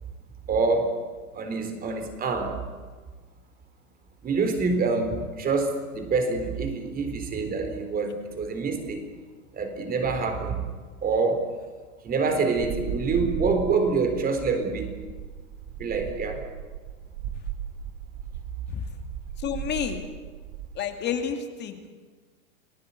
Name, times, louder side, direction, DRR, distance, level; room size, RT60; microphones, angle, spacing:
voice 1, 0.5-1.0 1.3-2.6 4.2-9.0 9.5-10.6 11.0-11.4 12.0-15.0 15.8-16.4, right 4 dB, 20° right, 7 dB, 3.9 m, -26 dB
sound 1, 12.6-20.8, right 9 dB, 35° right, 2.2 m, -36 dB
voice 2, 19.4-20.0 20.7-21.9, left 8 dB, 25° left, 6 dB, 2.6 m, -30 dB
29.0 x 18.0 x 8.4 m, 1.5 s
hypercardioid pair, 140°, 43 cm